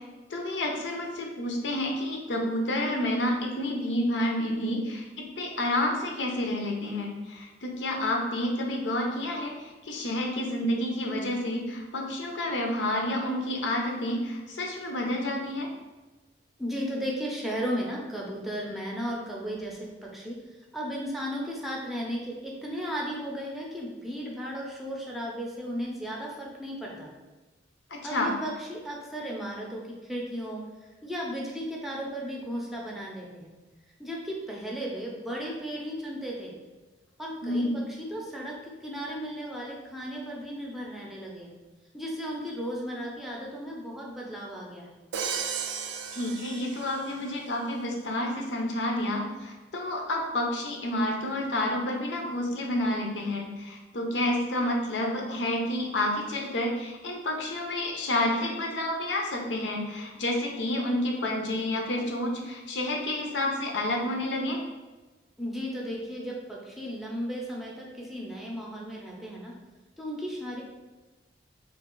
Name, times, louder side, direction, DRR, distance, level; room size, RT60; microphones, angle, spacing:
voice 1, 0.3-5.0 5.4-15.7 27.9-28.3 37.4-37.8 46.1-64.6, left 1 dB, 90° left, 1 dB, 0.7 m, -29 dB
voice 2, 16.6-20.4 20.7-27.1 28.0-30.6 31.0-33.5 34.0-36.5 37.2-41.5 41.9-45.0 65.4-69.5 70.0-70.6, equal, ahead, -3 dB, 0.6 m, -35 dB
Crash cymbal, 45.1-47.3, right 7 dB, 75° right, 0.3 m, -35 dB
3.2 x 2.9 x 3.7 m, 1.2 s
head